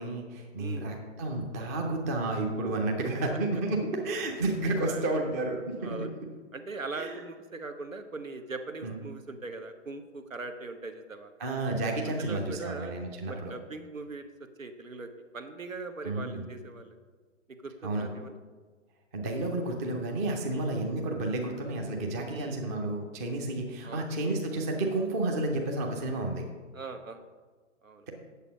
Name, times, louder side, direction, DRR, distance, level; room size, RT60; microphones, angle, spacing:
voice 1, 0.0-6.1 7.0-7.1 8.8-9.0 11.4-13.5 16.0-16.5 17.8-18.1 19.1-26.5, right 2 dB, 15° right, 1 dB, 0.5 m, -31 dB
voice 2, 0.5-0.9 4.8-5.2 5.8-6.1 6.5-11.3 12.1-13.0 13.3-17.0 17.5-18.4 20.5-20.7 22.3-22.6 23.8-24.4 26.7-27.2 27.8-28.1, right 3 dB, 85° right, 8 dB, 1.1 m, -41 dB
8.3 x 7.1 x 5.2 m, 1.4 s
figure-of-eight pair, 130°, 39 cm